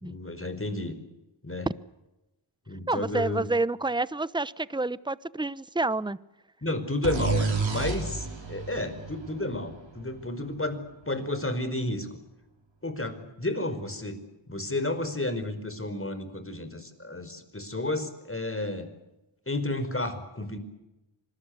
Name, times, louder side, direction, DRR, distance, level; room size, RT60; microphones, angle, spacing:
voice 1, 0.0-1.0 1.4-1.7 2.7-3.4 6.6-10.8 11.1-12.1 12.8-14.2 14.5-18.9 19.5-20.6, left 2 dB, 25° left, 10 dB, 5.1 m, -31 dB
voice 2, 2.9-6.2, right 2 dB, 10° right, 17 dB, 0.9 m, -28 dB
sound 1, 7.0-10.7, right 4 dB, 75° right, 6.5 m, -31 dB
26.0 x 20.0 x 8.2 m, 0.98 s
cardioid pair, 55°, 47 cm